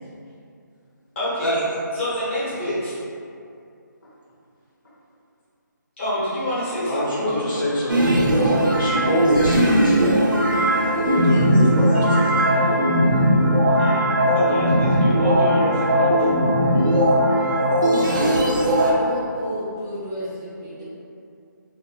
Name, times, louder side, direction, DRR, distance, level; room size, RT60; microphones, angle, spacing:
voice 1, 1.2-1.6 2.0-2.9 6.0-7.6 13.8-16.1, left 1 dB, 40° left, -9 dB, 0.9 m, -27 dB
voice 2, 6.9-9.9 11.2-12.4, equal, 75° left, -8 dB, 1.1 m, -25 dB
sound 1, 7.9-18.9, equal, 80° right, 0.5 m, -18 dB
voice 3, 18.0-20.8, equal, 10° right, -9 dB, 0.3 m, -30 dB
2.9 x 2.7 x 2.2 m, 2.5 s
figure-of-eight pair, 155°, 11 cm